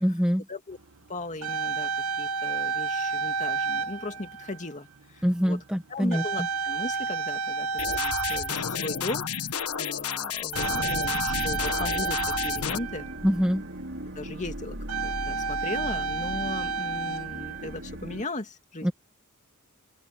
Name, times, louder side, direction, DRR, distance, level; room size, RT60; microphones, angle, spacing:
voice 1, 0.0-0.4 5.2-6.2 13.2-13.6 18.8-18.9, equal, 5° right, 1.5 m, -24 dB
sound 1, 0.9-1.0 1.2-4.7 5.4-5.6 6.1-9.4 10.5-13.6 14.3-14.4 14.7-17.8, right 5 dB, 80° right, 2.0 m, -31 dB
voice 2, 1.1-1.9 2.2-5.6 5.9-13.1 14.2-14.8 15.0-18.9, left 2 dB, 35° left, 2.4 m, -37 dB
sound 2, 7.8-12.8, left 7 dB, 85° left, 1.5 m, -31 dB
sound 3, 11.3-18.2, right 1 dB, 60° right, 5.7 m, -38 dB
open air
head